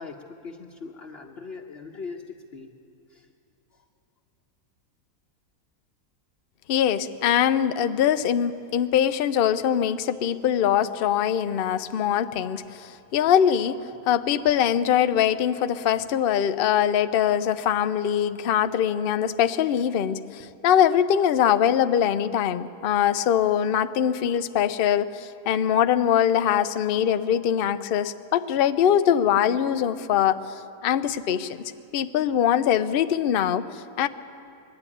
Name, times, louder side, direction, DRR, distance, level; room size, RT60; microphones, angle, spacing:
voice 1, 0.0-2.8 3.1-3.3 3.7-3.8, left 4 dB, 45° left, 0 dB, 1.1 m, -40 dB
voice 2, 6.7-13.8 14.1-30.4 30.8-31.6 31.9-34.1, left 9 dB, 60° left, 11 dB, 0.6 m, -22 dB
21.0 x 12.5 x 9.8 m, 2.6 s
omnidirectional pair, 1.6 m